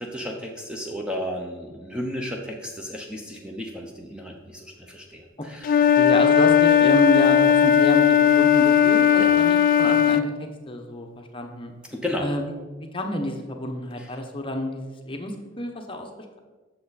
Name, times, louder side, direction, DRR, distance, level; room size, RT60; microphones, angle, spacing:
voice 1, 0.0-6.0 9.2-9.4 11.9-12.3 14.0-14.1, equal, 5° right, 0 dB, 0.6 m, -33 dB
Wind instrument woodwind instrument, 5.6-10.3, left 8 dB, 45° left, 0.3 m, -17 dB
voice 2, 5.9-11.7 12.2-12.4 12.8-16.1, left 1 dB, 25° left, 3 dB, 0.9 m, -29 dB
8.3 x 6.6 x 4.0 m, 1.3 s
head